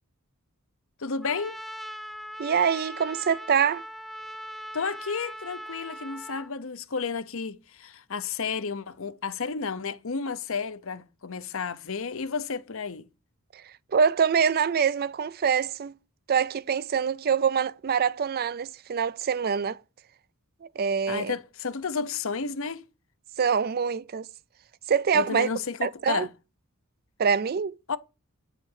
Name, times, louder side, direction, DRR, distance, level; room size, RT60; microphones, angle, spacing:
voice 1, 1.0-1.6 4.7-13.1 21.1-22.8 25.1-26.3 27.9-28.0, left 5 dB, 70° left, 0.8 m, -32 dB
Trumpet, 1.2-6.5, equal, ahead, 0.7 m, -40 dB
voice 2, 2.4-3.8 13.5-15.9 16.3-19.8 20.6-21.3 23.4-24.3 24.9-25.5 25.8-26.3 27.2-27.8, right 6 dB, 45° right, 0.4 m, -25 dB
9.6 x 5.0 x 7.5 m
head